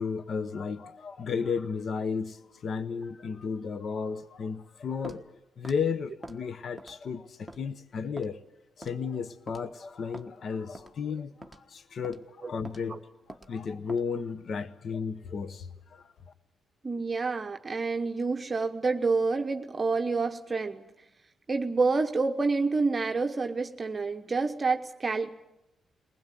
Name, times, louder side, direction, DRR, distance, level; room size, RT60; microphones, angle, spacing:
voice 1, 0.0-8.4 8.8-13.0 13.5-16.1, left 5 dB, 50° left, 0.9 m, -34 dB
Walk footsteps, 5.0-5.2 5.6-5.8 6.2-6.4 6.8-7.1 7.5-7.6 8.2-8.3 8.8-9.0 9.5-9.7 10.1-10.3 10.7-10.9 11.4-11.6 12.0-12.2 12.6-12.8 13.3-13.5 13.9-14.1, right 1 dB, ahead, 1.4 m, -45 dB
voice 2, 16.8-20.8 21.5-25.3, right 4 dB, 25° right, 1.0 m, -28 dB
21.5 x 20.0 x 9.2 m
cardioid pair, 130°, 0 cm